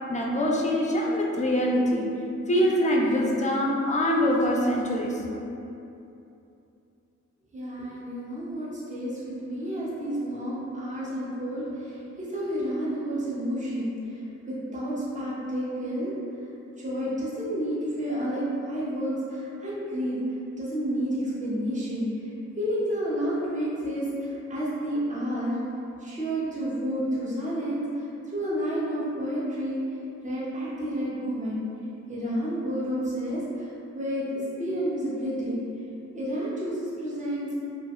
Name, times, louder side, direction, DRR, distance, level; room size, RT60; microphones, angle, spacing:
voice 1, 0.1-2.1 2.5-5.2, equal, 25° left, -2 dB, 0.4 m, -24 dB
voice 2, 7.5-16.1 16.8-20.2 20.6-22.1 22.6-25.6 26.0-29.8 30.2-31.6 32.1-34.2 34.6-35.6 36.1-37.5, equal, 25° right, -8 dB, 0.7 m, -30 dB
3.0 x 2.3 x 2.8 m, 2.7 s
wide cardioid pair, 95°, 29 cm